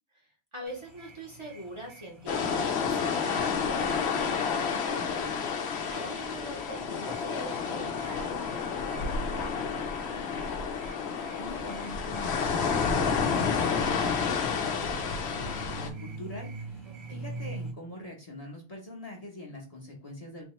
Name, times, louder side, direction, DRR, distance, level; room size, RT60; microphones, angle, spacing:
voice 1, 0.1-10.5 17.1-17.3, right 1 dB, 30° right, -2 dB, 1.0 m, -43 dB
sound 1, 0.7-17.7, right 3 dB, 85° right, 1.7 m, -46 dB
sound 2, 2.3-15.9, left 6 dB, 90° left, 0.9 m, -30 dB
voice 2, 11.4-20.4, left 1 dB, 40° left, -1 dB, 1.0 m, -43 dB
3.6 x 2.9 x 3.1 m, 0.35 s
omnidirectional pair, 1.1 m